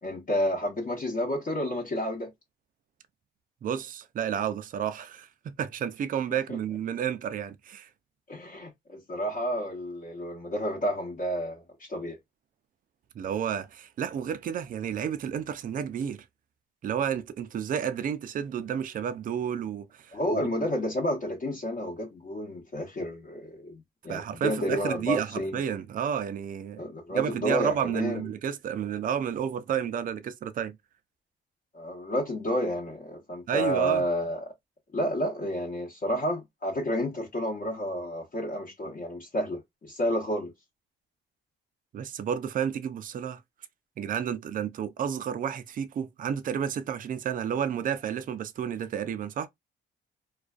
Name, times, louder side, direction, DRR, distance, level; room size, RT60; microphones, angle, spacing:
voice 1, 0.0-2.3 8.3-12.2 20.1-25.6 26.8-28.2 31.7-34.4 34.9-40.5, equal, 40° left, 0.9 m, -30 dB
voice 2, 3.6-7.9 13.1-16.3 16.8-20.6 24.1-26.8 27.1-30.8 33.5-34.0 41.9-43.4 44.0-49.5, right 8 dB, 45° right, 0.4 m, -31 dB
2.4 x 2.2 x 2.3 m
cardioid pair, 90°, 20 cm